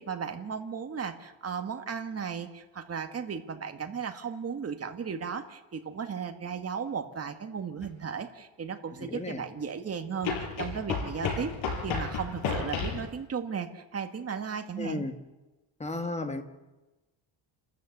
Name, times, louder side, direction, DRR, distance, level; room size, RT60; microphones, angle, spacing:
voice 1, 0.0-11.6 11.8-15.1, right 6 dB, 30° right, 6 dB, 1.8 m, -35 dB
sound 1, 7.8-7.9 10.2-13.1, left 5 dB, 75° left, 5.3 m, -32 dB
voice 2, 8.9-9.4 14.8-15.1 15.8-16.4, left 2 dB, 15° left, 7 dB, 1.6 m, -34 dB
29.0 x 13.5 x 8.1 m, 1.1 s
cardioid pair, 155°, 48 cm